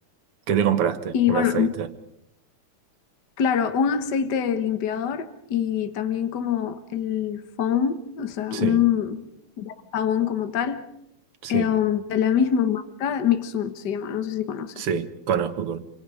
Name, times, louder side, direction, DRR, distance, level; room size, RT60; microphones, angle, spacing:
voice 1, 0.5-1.9 8.5-8.8 11.4-11.7 14.8-15.8, right 8 dB, 90° right, 2.3 m, -25 dB
voice 2, 1.1-1.7 3.4-9.3 9.6-10.8 11.5-14.8, left 8 dB, 55° left, 1.9 m, -24 dB
27.5 x 25.0 x 5.1 m
omnidirectional pair, 2.4 m